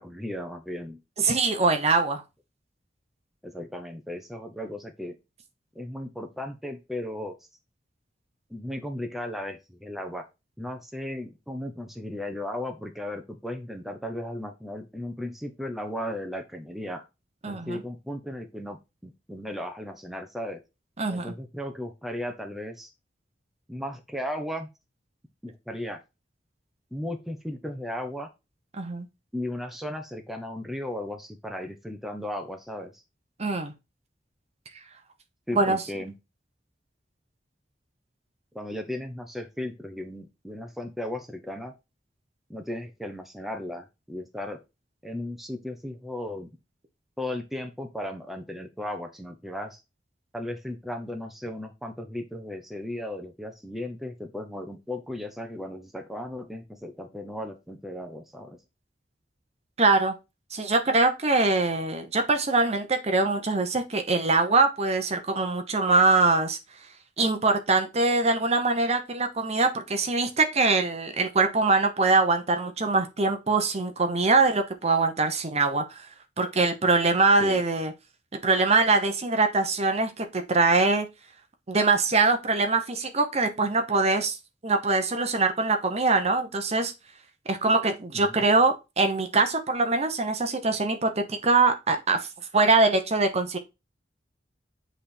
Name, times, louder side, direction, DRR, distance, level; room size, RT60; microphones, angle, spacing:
voice 1, 0.0-1.0 3.4-5.1 5.7-7.4 8.5-10.2 10.6-17.1 17.5-20.6 21.1-22.9 23.7-24.7 25.4-26.0 26.9-28.3 29.3-33.0 35.5-36.1 38.5-41.7 42.5-44.6 45.0-46.5 47.2-49.8 50.3-58.6 77.4-77.6 88.1-88.4, left 1 dB, ahead, 0.8 m, -36 dB
voice 2, 1.2-2.2 17.4-17.8 21.0-21.3 28.7-29.1 33.4-33.7 35.6-35.8 59.8-60.1 60.5-66.6 67.2-76.0 76.4-77.9 78.3-81.1 81.7-84.4 84.6-86.9 87.5-92.3 92.5-93.6, right 3 dB, 35° right, 0.9 m, -23 dB
7.7 x 3.4 x 4.3 m
head